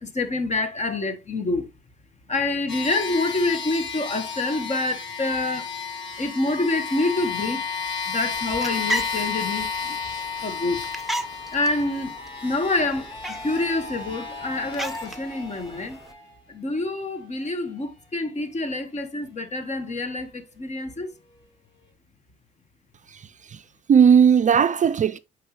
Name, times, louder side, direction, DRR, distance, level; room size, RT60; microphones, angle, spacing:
voice 1, 0.0-1.7 2.3-5.7 6.2-7.6 8.1-10.0 10.4-10.8 11.5-16.0 16.5-21.1, left 2 dB, 35° left, 1.3 m, -27 dB
sound 1, 2.7-16.3, left 5 dB, 70° left, 3.3 m, -33 dB
sound 2, 8.3-16.1, right 1 dB, ahead, 0.9 m, -36 dB
voice 2, 23.1-23.6 23.9-25.2, right 7 dB, 40° right, 0.4 m, -17 dB
7.8 x 4.7 x 3.1 m
cardioid pair, 90°, 20 cm